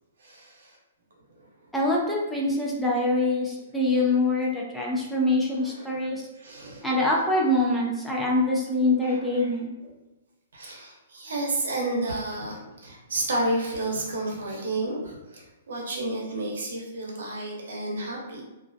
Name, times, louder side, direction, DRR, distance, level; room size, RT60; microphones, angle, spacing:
voice 1, 0.2-0.8 1.3-1.5 5.6-6.0 6.3-6.9 9.0-9.5 9.8-9.9 10.5-18.4, right 2 dB, 85° right, -2 dB, 0.8 m, -31 dB
voice 2, 1.7-6.2 6.8-9.8, left 2 dB, 5° left, -4 dB, 0.4 m, -24 dB
2.4 x 2.2 x 2.5 m, 1.0 s
hypercardioid pair, 150°, 0 cm